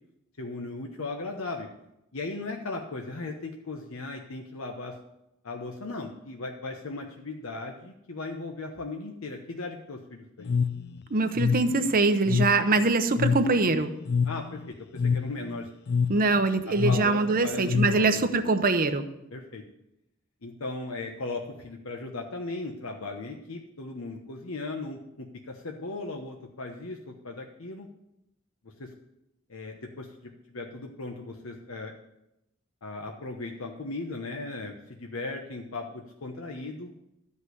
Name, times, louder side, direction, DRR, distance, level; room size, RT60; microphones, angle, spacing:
voice 1, 0.4-1.7 2.1-5.0 5.4-10.5 14.2-15.7 16.7-18.4 19.3-19.6 20.4-27.9 28.6-28.9 29.5-31.9 32.8-36.9, left 2 dB, 80° left, 2 dB, 1.1 m, -37 dB
sound 1, 10.4-18.3, left 5 dB, 50° left, 0.4 m, -28 dB
voice 2, 11.1-13.9 16.1-19.0, right 3 dB, 45° right, 8 dB, 0.8 m, -23 dB
12.5 x 5.6 x 8.0 m, 0.84 s
head